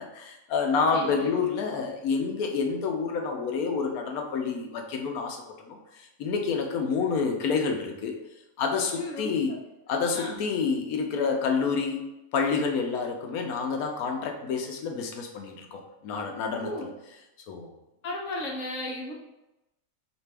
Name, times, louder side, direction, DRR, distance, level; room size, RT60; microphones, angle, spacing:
voice 1, 0.0-8.2 8.6-9.5 9.9-12.1 12.3-16.9 17.5-17.7, left 5 dB, 90° left, 3 dB, 1.1 m, -28 dB
voice 2, 0.9-1.4 8.9-9.3 9.9-10.4 16.6-16.9 18.0-19.1, left 1 dB, 60° left, -1 dB, 1.1 m, -35 dB
4.9 x 2.6 x 3.3 m, 0.95 s
omnidirectional pair, 1.5 m